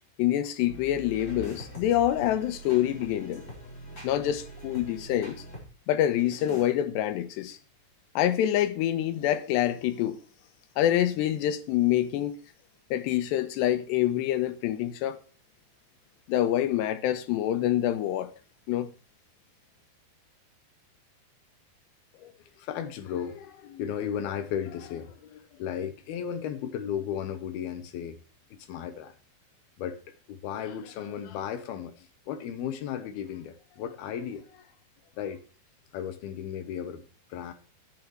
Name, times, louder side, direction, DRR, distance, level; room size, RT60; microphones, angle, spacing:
voice 1, 0.2-3.4 4.0-5.4 5.9-7.6 8.2-10.2 10.8-12.3 12.9-15.2 16.3-18.3 18.7-18.9, left 12 dB, 90° left, 3.2 m, -26 dB
sound 1, 0.7-5.7 6.2-6.7, equal, 15° left, 5.3 m, -44 dB
voice 2, 22.1-28.2 28.5-29.1 29.8-30.0 30.3-34.7 35.2-35.4 35.9-37.5, left 9 dB, 75° left, 2.9 m, -35 dB
11.0 x 10.0 x 4.6 m
omnidirectional pair, 4.8 m